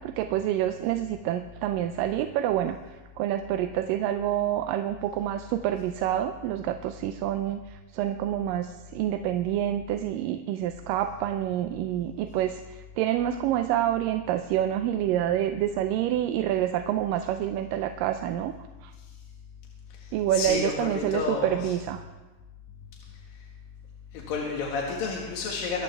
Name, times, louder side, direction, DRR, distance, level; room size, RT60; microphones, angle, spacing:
voice 1, 0.0-18.6 18.8-18.9 20.1-22.0, right 12 dB, 80° right, 8 dB, 2.2 m, -27 dB
voice 2, 20.0-21.6 24.1-25.8, left 4 dB, 80° left, -2 dB, 3.4 m, -30 dB
24.0 x 13.0 x 3.4 m, 1.2 s
omnidirectional pair, 4.0 m